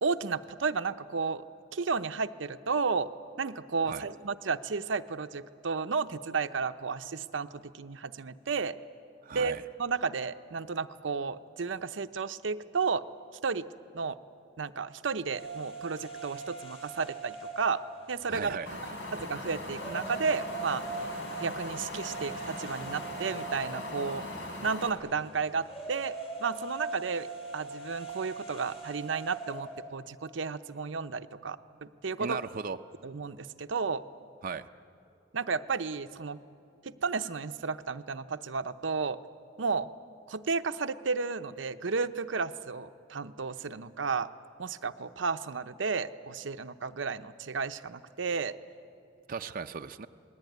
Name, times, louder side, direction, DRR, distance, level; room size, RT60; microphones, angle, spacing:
voice 1, 0.0-1.4 1.7-3.1 3.4-8.7 9.3-13.0 13.4-13.7 13.9-14.2 14.6-17.8 18.1-18.6 18.9-20.8 21.4-24.2 24.6-26.1 26.4-27.3 27.5-32.4 33.0-34.0 35.3-36.4 36.8-39.2 39.6-39.9 40.3-44.3 44.6-48.5, right 5 dB, 80° right, 9 dB, 0.7 m, -32 dB
voice 2, 9.2-9.6 18.3-18.8 32.2-32.8 34.4-34.7 49.3-50.1, right 5 dB, 50° right, 7 dB, 0.5 m, -37 dB
sound 1, 15.3-29.8, right 3 dB, 30° left, 6.4 m, -42 dB
Wind, 18.7-24.9, left 1 dB, 80° left, 3.5 m, -40 dB
27.5 x 19.5 x 9.3 m, 2.6 s
head